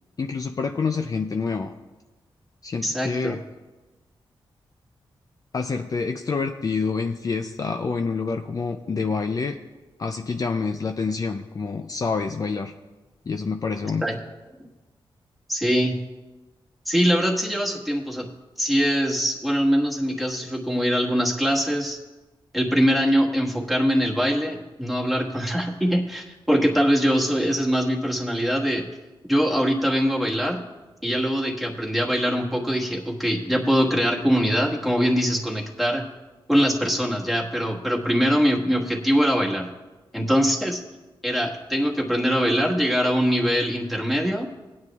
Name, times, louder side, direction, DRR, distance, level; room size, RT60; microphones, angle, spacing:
voice 1, 0.2-1.7 2.6-3.4 5.5-9.6 10.0-12.7 13.3-14.0, left 4 dB, 40° left, 5 dB, 0.5 m, -27 dB
voice 2, 2.8-3.4 14.0-14.2 15.5-16.0 16.8-18.3 18.6-22.0 22.5-28.9 29.3-30.6 31.0-36.1 36.5-39.7 40.1-40.8 41.2-44.5, equal, ahead, -3 dB, 1.6 m, -22 dB
19.0 x 9.4 x 2.4 m, 1.2 s
wide cardioid pair, 105°, 9 cm